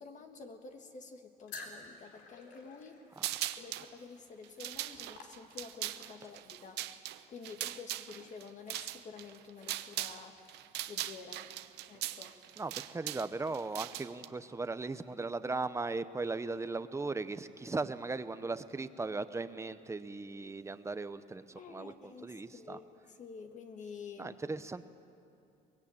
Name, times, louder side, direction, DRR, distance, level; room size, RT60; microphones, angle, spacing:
voice 1, 0.0-3.0 3.6-7.0 7.3-10.4 10.9-11.5 11.9-12.4 21.6-24.4, left 5 dB, 45° left, 5 dB, 1.7 m, -49 dB
sound 1, 1.5-6.0, left 4 dB, 90° left, 3.7 m, -51 dB
sound 2, 3.2-3.9 4.4-10.2 10.5-14.3, right 14 dB, 85° right, 0.9 m, -40 dB
voice 2, 12.6-22.8 24.2-24.9, right 3 dB, 15° right, 12 dB, 0.9 m, -38 dB
23.5 x 20.5 x 8.8 m, 2.6 s
cardioid pair, 110°, 17 cm